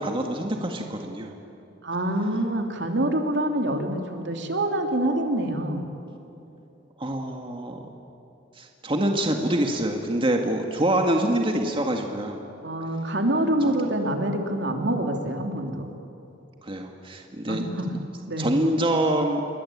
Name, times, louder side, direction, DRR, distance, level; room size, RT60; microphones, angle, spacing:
voice 1, 0.0-1.4 7.0-7.8 8.6-12.4 13.7-13.8 16.6-17.6 18.4-19.4, right 1 dB, 30° right, 2 dB, 1.9 m, -25 dB
voice 2, 1.8-5.9 12.6-15.9 17.5-17.9 18.3-18.5, right 1 dB, 65° right, 3 dB, 3.2 m, -26 dB
28.5 x 23.0 x 8.7 m, 2.9 s
head